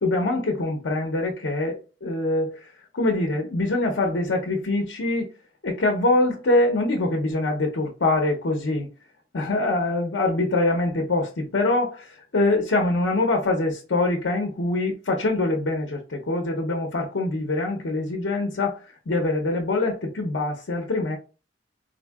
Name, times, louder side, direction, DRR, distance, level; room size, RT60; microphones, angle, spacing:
voice 1, 0.0-5.3 5.6-8.9 9.3-21.2, left 2 dB, 85° left, 0.6 m, -24 dB
3.9 x 2.6 x 2.3 m
head